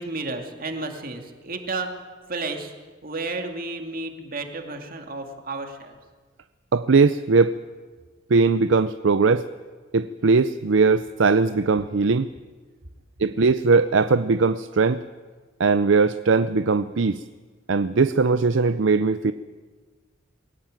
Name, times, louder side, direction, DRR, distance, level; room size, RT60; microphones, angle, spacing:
voice 1, 0.0-1.9 2.3-2.7 3.0-5.9, right 3 dB, 45° right, 4 dB, 2.5 m, -32 dB
voice 2, 6.7-7.5 8.3-9.5 9.9-12.3 13.2-15.0 15.6-17.2 17.7-19.3, right 4 dB, 70° right, 12 dB, 0.6 m, -20 dB
22.0 x 17.5 x 9.1 m, 1.4 s
head